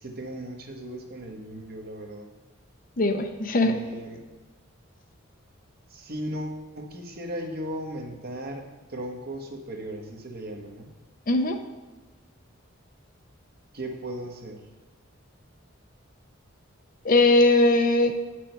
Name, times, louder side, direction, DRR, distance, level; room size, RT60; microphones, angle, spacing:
voice 1, 0.0-2.3 3.6-4.2 5.9-8.6 8.9-10.9 13.7-14.6, right 1 dB, 50° right, 2 dB, 1.2 m, -36 dB
voice 2, 3.0-3.7 11.3-11.6 17.0-18.1, left 2 dB, 45° left, 6 dB, 0.7 m, -20 dB
9.2 x 6.2 x 4.5 m, 1.3 s
head